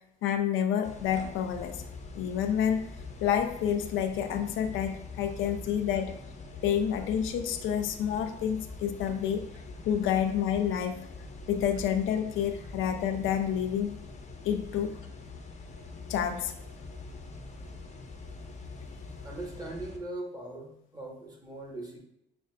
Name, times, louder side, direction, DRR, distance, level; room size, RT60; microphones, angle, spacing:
voice 1, 0.2-1.8 2.2-2.9 3.2-6.2 6.6-9.5 9.8-11.1 11.5-14.0 14.4-15.0 16.1-16.5, left 9 dB, 85° left, 6 dB, 0.4 m, -29 dB
sound 1, 0.8-20.0, left 3 dB, 35° left, 0.8 m, -44 dB
voice 2, 19.2-22.0, right 2 dB, 20° right, -1 dB, 1.1 m, -40 dB
6.6 x 2.3 x 2.3 m, 0.77 s
cardioid pair, 90°, 20 cm